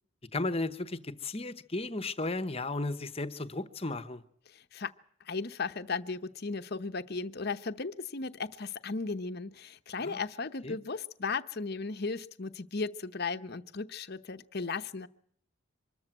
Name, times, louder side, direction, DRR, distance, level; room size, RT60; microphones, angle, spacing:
voice 1, 0.3-4.2 10.0-10.2 10.6-10.8, left 2 dB, 25° left, 1.0 m, -34 dB
voice 2, 4.5-4.9 5.2-15.1, left 4 dB, 50° left, 0.8 m, -36 dB
25.0 x 13.5 x 7.8 m
head